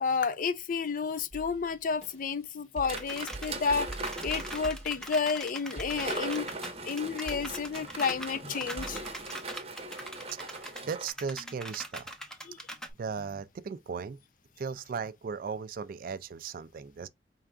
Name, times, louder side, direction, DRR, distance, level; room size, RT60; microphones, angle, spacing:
voice 1, 0.0-6.6 6.8-9.0 12.4-12.6, left 5 dB, 50° left, 0.4 m, -31 dB
sound 1, 1.3-9.3, right 1 dB, 35° left, 1.9 m, -47 dB
sound 2, 2.8-4.8 5.7-11.1, right 3 dB, 35° right, 0.9 m, -40 dB
sound 3, 2.9-3.5 3.9-10.8 11.1-12.9, right 1 dB, 5° left, 0.7 m, -42 dB
voice 2, 10.3-12.1 13.0-14.2 14.6-17.1, right 6 dB, 50° right, 0.3 m, -37 dB
4.7 x 3.3 x 2.4 m
head